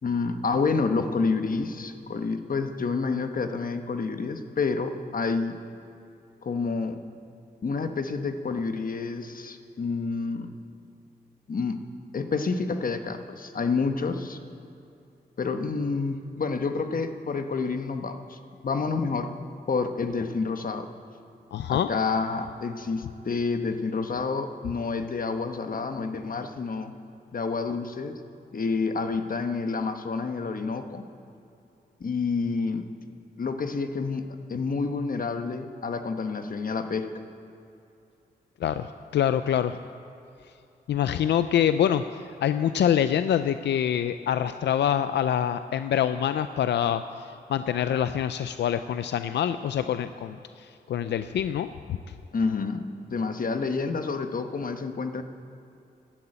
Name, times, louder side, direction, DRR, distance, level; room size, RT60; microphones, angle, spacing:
voice 1, 0.0-5.6 6.4-7.0 7.6-10.5 11.5-11.8 12.1-14.4 15.4-19.3 19.7-20.9 21.7-26.9 27.3-28.1 28.5-31.0 32.0-32.9 33.4-37.1 52.3-52.8 53.1-55.2, left 4 dB, 55° left, 7 dB, 1.2 m, -29 dB
voice 2, 21.5-21.9 38.6-39.8 40.9-42.0 42.4-47.0 47.5-52.0, left 9 dB, 85° left, 11 dB, 0.4 m, -25 dB
12.5 x 11.0 x 8.8 m, 2.7 s
cardioid pair, 60°, 17 cm